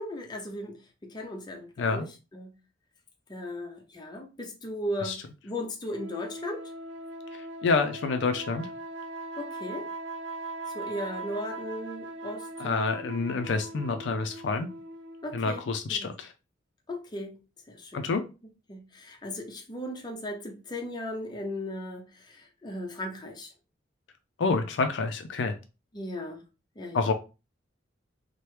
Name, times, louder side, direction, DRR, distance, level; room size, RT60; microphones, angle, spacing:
voice 1, 0.0-2.5 3.3-6.7 9.4-9.9 10.7-12.8 15.2-15.6 15.9-16.1 16.9-17.4 17.7-18.1 18.7-23.5 25.9-26.4 26.8-27.1, left 1 dB, 25° left, 0.6 m, -37 dB
sound 1, 5.9-15.6, right 2 dB, 70° right, 0.5 m, -40 dB
voice 2, 7.6-8.7 12.6-14.7 15.3-16.3 17.9-18.2 24.4-25.6 26.9-27.1, left 4 dB, 65° left, 0.4 m, -28 dB
2.9 x 2.1 x 3.2 m
head